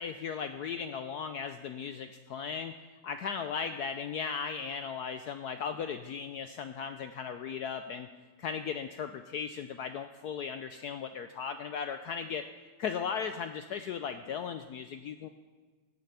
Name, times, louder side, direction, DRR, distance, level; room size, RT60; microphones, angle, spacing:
voice 1, 0.0-2.7 3.0-8.1 8.4-12.4 12.8-15.3, left 6 dB, 70° left, 9 dB, 0.9 m, -37 dB
17.0 x 9.3 x 5.6 m, 1.4 s
omnidirectional pair, 2.2 m